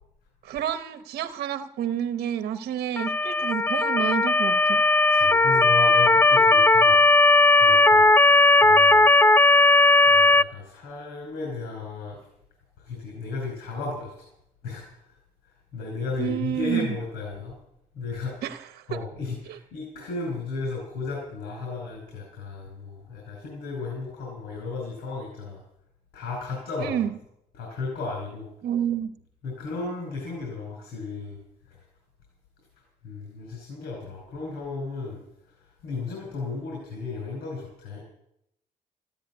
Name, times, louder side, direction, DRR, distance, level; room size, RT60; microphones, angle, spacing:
voice 1, 0.4-4.8 16.2-17.0 18.4-19.0 19.5-19.6 26.8-27.1 28.6-29.1, right 9 dB, 80° right, 10 dB, 0.9 m, -29 dB
Motor vehicle (road) / Siren, 3.0-10.4, left 2 dB, 15° left, 0.5 m, -17 dB
voice 2, 5.1-7.0 7.6-8.2 8.6-9.1 10.1-12.2 12.8-14.3 14.6-15.2 15.4-17.6 17.9-18.6 18.9-25.6 26.1-27.0 27.5-28.5 29.4-31.4 31.7-31.9 33.0-38.0, left 3 dB, 85° left, 0 dB, 5.2 m, -34 dB
15.0 x 10.0 x 9.4 m, 0.78 s
supercardioid pair, 65°, 16 cm